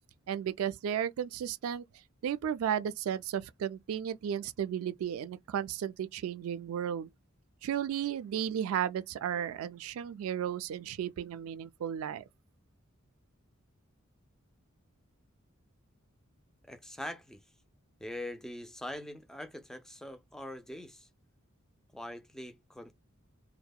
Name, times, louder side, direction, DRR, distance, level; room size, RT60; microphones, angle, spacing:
voice 1, 0.3-1.8 2.2-7.1 7.6-12.2, right 9 dB, 80° right, 0.3 m, -34 dB
voice 2, 16.7-17.4 18.0-21.1 21.9-22.9, left 1 dB, 5° left, 0.3 m, -43 dB
2.7 x 2.0 x 2.2 m
head